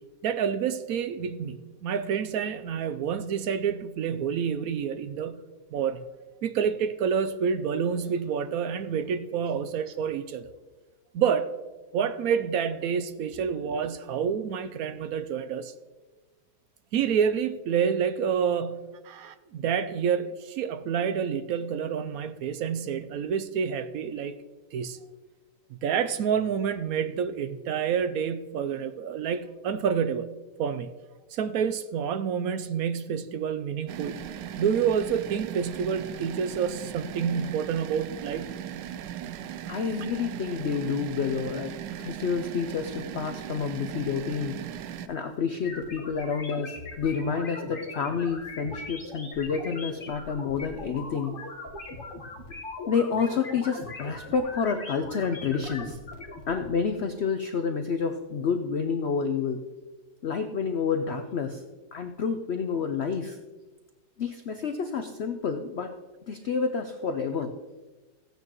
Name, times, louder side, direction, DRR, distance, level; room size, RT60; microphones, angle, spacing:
voice 1, 0.2-5.4 5.7-6.0 6.4-10.5 11.1-11.5 11.9-15.7 16.9-24.4 24.7-25.0 25.8-30.3 30.6-30.9 31.3-34.2 34.6-38.5, right 7 dB, 70° right, 0.9 m, -28 dB
sound 1, 33.9-45.1, right 10 dB, 85° right, 1.2 m, -38 dB
voice 2, 39.7-44.7 45.1-51.4 52.9-56.0 56.5-59.6 60.2-61.6 61.9-63.4 64.2-65.9 66.3-67.6, left 6 dB, 80° left, 0.5 m, -29 dB
sound 2, 45.6-56.7, left 2 dB, 35° left, 1.4 m, -40 dB
15.5 x 9.1 x 3.0 m
omnidirectional pair, 1.9 m